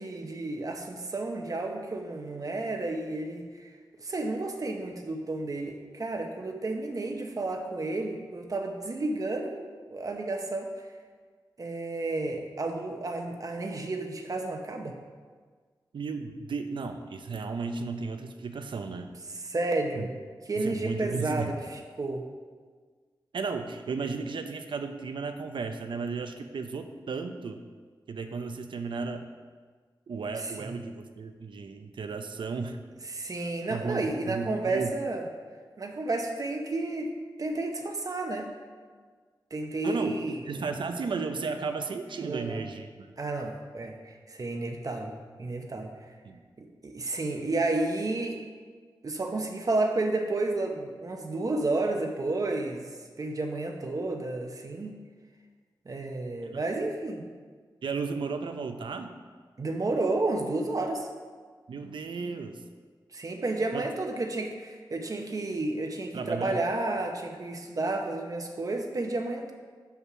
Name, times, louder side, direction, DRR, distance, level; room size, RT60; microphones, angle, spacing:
voice 1, 0.0-3.5 4.0-10.7 11.6-15.0 19.5-20.1 20.5-21.5 22.0-22.2 30.4-30.7 33.1-35.2 35.8-37.1 37.4-38.5 39.5-40.6 42.2-42.6 43.2-45.1 45.4-45.9 46.6-48.4 49.0-52.9 53.2-55.0 55.9-57.3 59.6-61.1 63.1-69.5, right 2 dB, 45° right, 3 dB, 0.8 m, -31 dB
voice 2, 15.9-19.1 20.0-20.1 20.6-21.5 23.3-27.6 28.1-29.3 30.1-32.8 33.7-34.9 39.8-40.1 40.5-43.1 46.2-46.4 56.4-56.6 57.8-59.2 61.7-62.6 63.7-63.8 66.1-66.6, right 4 dB, 80° right, 7 dB, 0.6 m, -34 dB
6.3 x 5.7 x 6.1 m, 1.5 s
wide cardioid pair, 95°, 8 cm